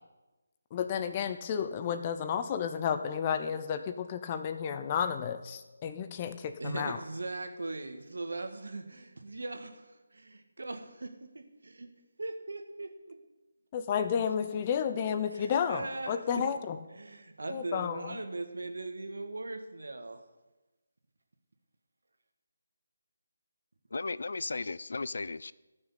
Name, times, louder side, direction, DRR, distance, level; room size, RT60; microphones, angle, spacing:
voice 1, 0.7-7.0 13.7-16.8 17.5-18.2, left 7 dB, 25° left, 9 dB, 0.8 m, -32 dB
voice 2, 6.6-11.9 12.2-13.2 15.3-16.4 16.9-20.2, right 2 dB, 65° right, 6 dB, 1.8 m, -40 dB
voice 3, 23.9-25.5, left 3 dB, 60° left, 18 dB, 0.4 m, -35 dB
14.5 x 6.3 x 8.4 m, 1.1 s
figure-of-eight pair, 155°, 0 cm